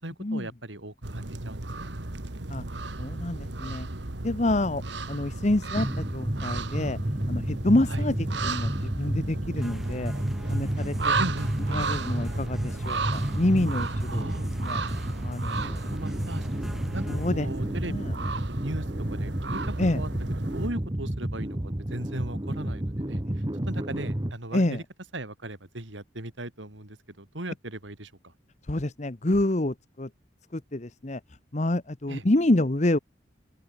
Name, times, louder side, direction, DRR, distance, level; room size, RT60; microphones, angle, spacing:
voice 1, 0.0-1.9 7.9-8.1 11.2-11.5 14.1-14.5 15.6-18.0 18.2-20.1 20.4-24.8 25.1-28.3 32.1-32.2, right 1 dB, 90° right, 4.3 m, -38 dB
sound 1, 1.0-20.7, right 3 dB, 75° right, 1.8 m, -34 dB
voice 2, 3.0-3.9 4.2-4.8 5.1-7.0 7.3-8.1 8.4-10.1 10.5-11.2 11.7-14.3 14.6-14.8 15.2-15.8 17.1-17.5 17.8-18.1 19.8-20.0 24.5-24.8 28.7-30.1 30.5-31.2 31.5-33.0, left 1 dB, 40° left, 1.0 m, -27 dB
sound 2, 5.7-24.3, right 1 dB, 25° right, 1.2 m, -31 dB
sound 3, 9.6-17.3, equal, ahead, 6.1 m, -48 dB
open air
head